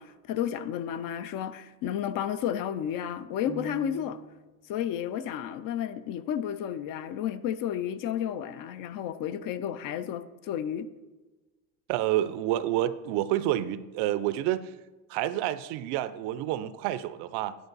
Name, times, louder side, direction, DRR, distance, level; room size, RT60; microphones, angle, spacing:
voice 1, 0.0-4.2 4.7-10.9, left 9 dB, 50° left, 0.5 m, -32 dB
sound 1, 3.4-4.5, right 2 dB, 5° left, 0.7 m, -45 dB
voice 2, 11.9-14.7 15.1-17.6, right 13 dB, 60° right, 0.5 m, -29 dB
10.0 x 4.6 x 4.0 m
supercardioid pair, 120°, 45 cm